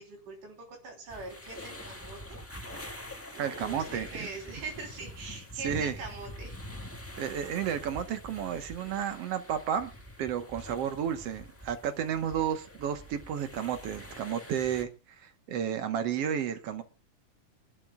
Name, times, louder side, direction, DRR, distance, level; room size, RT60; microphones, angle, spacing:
voice 1, 0.0-2.4 3.3-6.6, right 3 dB, 75° right, 2 dB, 5.0 m, -42 dB
sound 1, 1.1-14.8, left 1 dB, 15° left, 0.5 m, -45 dB
voice 2, 3.4-4.3 5.6-6.0 7.2-9.9 10.2-14.9 15.2-16.8, right 8 dB, 60° right, 9 dB, 1.8 m, -32 dB
25.0 x 11.5 x 2.3 m, 0.29 s
omnidirectional pair, 3.7 m